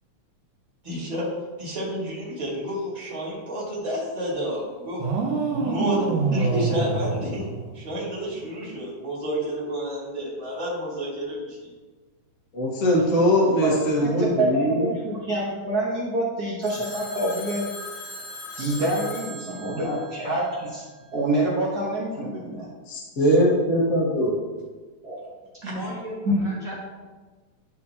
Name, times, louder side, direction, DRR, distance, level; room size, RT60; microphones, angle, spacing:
voice 1, 0.8-1.3 1.6-5.0 5.6-6.0 6.3-7.5 7.7-11.7 25.6-25.7, equal, 15° right, -6 dB, 1.7 m, -30 dB
sound 1, 5.0-8.1, right 4 dB, 85° right, 2.4 m, -26 dB
voice 2, 12.5-15.0 22.9-24.3, equal, 35° left, -3 dB, 1.2 m, -21 dB
voice 3, 14.0-17.7 18.5-20.8 21.1-22.7 25.0-25.3 26.2-26.4, right 1 dB, 70° right, -5 dB, 0.9 m, -26 dB
Telephone, 16.6-20.9, left 1 dB, 75° left, 2.8 m, -39 dB
voice 4, 25.6-26.7, equal, 35° right, -8 dB, 1.7 m, -34 dB
11.5 x 4.3 x 2.9 m, 1.3 s
omnidirectional pair, 3.5 m